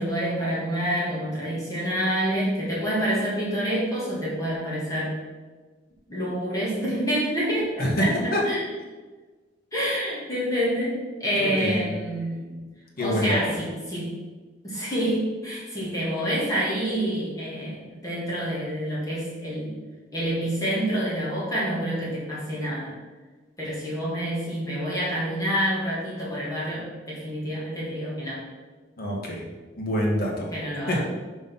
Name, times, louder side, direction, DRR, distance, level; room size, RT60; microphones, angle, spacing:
voice 1, 0.0-5.2 6.1-8.6 9.7-12.7 13.0-14.2 14.6-19.7 20.1-23.0 23.6-28.4 30.5-31.0, equal, 20° left, -8 dB, 2.2 m, -27 dB
voice 2, 7.8-8.4 11.4-11.9 13.0-13.5 29.0-29.5 29.8-30.5 30.9-31.0, equal, 55° left, -2 dB, 1.8 m, -25 dB
5.4 x 5.0 x 5.5 m, 1.3 s
head